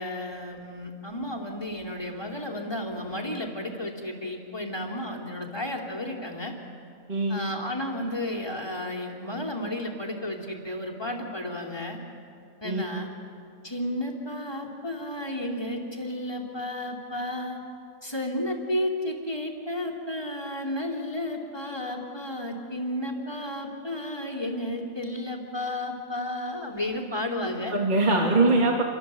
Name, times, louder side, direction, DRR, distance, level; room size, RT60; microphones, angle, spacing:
voice 1, 0.0-6.5 7.3-12.0 12.6-13.1 13.6-17.6 18.0-27.7, left 1 dB, 15° left, 2 dB, 3.0 m, -32 dB
voice 2, 7.1-7.5 12.6-12.8 27.4-28.8, right 2 dB, 25° right, -1 dB, 2.4 m, -23 dB
29.0 x 24.0 x 7.7 m, 2.4 s
omnidirectional pair, 1.8 m